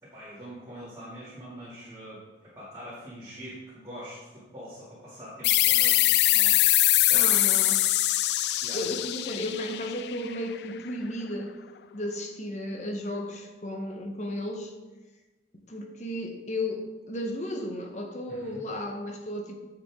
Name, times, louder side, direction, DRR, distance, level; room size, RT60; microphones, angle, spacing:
voice 1, 0.0-7.4 8.6-8.8 18.3-18.6, equal, 20° right, -11 dB, 2.4 m, -44 dB
sound 1, 5.4-10.7, left 15 dB, 65° left, 0.3 m, -23 dB
voice 2, 7.1-7.8 8.7-11.5 11.9-14.7 15.7-19.5, left 1 dB, 40° left, 3 dB, 1.1 m, -34 dB
9.8 x 6.9 x 3.7 m, 1.2 s
head